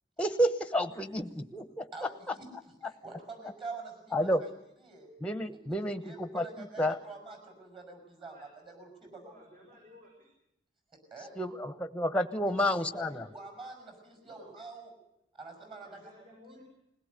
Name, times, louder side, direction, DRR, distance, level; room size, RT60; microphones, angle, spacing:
voice 1, 0.2-2.1 4.1-4.4 5.2-7.0 11.4-13.3, equal, 5° left, 11 dB, 1.0 m, -30 dB
voice 2, 1.9-4.5 4.8-5.2 6.0-9.4 9.7-9.8 10.9-11.4 12.9-14.9 15.3-16.1, right 3 dB, 30° right, 4 dB, 5.9 m, -46 dB
voice 3, 9.0-10.3 12.5-13.3 14.2-14.6 15.8-16.6, equal, 50° right, -1 dB, 5.8 m, -55 dB
21.0 x 17.0 x 8.1 m, 0.82 s
head